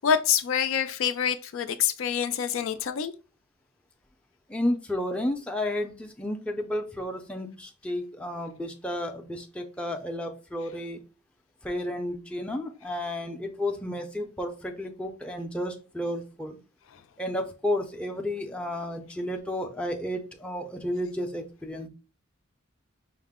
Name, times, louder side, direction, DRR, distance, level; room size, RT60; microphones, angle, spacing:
voice 1, 0.0-3.1, left 8 dB, 70° left, 0.4 m, -26 dB
voice 2, 4.5-11.0 11.6-16.6 17.2-21.9, left 1 dB, 5° left, 0.5 m, -32 dB
5.5 x 2.1 x 3.6 m
head